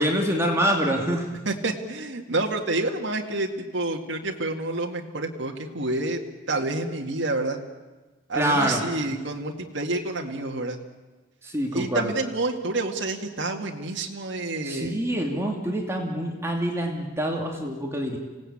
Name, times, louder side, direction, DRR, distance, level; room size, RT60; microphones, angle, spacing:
voice 1, 0.0-1.4 8.3-8.8 11.4-12.1 14.6-18.2, equal, 15° right, 1 dB, 2.4 m, -26 dB
voice 2, 1.5-6.2 6.5-7.6 8.3-10.8 11.7-14.9, right 2 dB, 65° right, 1 dB, 2.0 m, -28 dB
26.5 x 17.5 x 8.7 m, 1.3 s
head